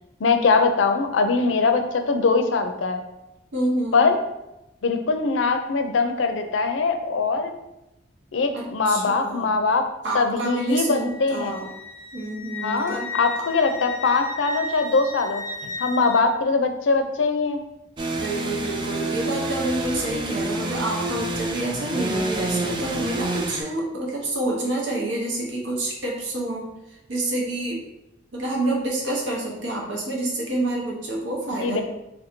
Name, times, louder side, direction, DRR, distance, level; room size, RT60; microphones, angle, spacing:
voice 1, 0.2-3.0 3.9-4.2 4.8-7.5 8.3-9.8 10.1-11.6 12.6-17.6 31.6-31.8, left 4 dB, 85° left, 6 dB, 0.5 m, -22 dB
voice 2, 3.5-4.1 8.5-9.5 10.0-11.7 12.1-13.1 18.2-26.7 27.1-27.8 28.3-31.8, right 2 dB, 80° right, -2 dB, 0.9 m, -28 dB
Wind instrument woodwind instrument, 10.5-16.2, left 3 dB, 15° left, 0.7 m, -35 dB
sound 1, 18.0-23.6, right 2 dB, 25° right, 0.4 m, -28 dB
3.1 x 2.6 x 4.3 m, 0.92 s
head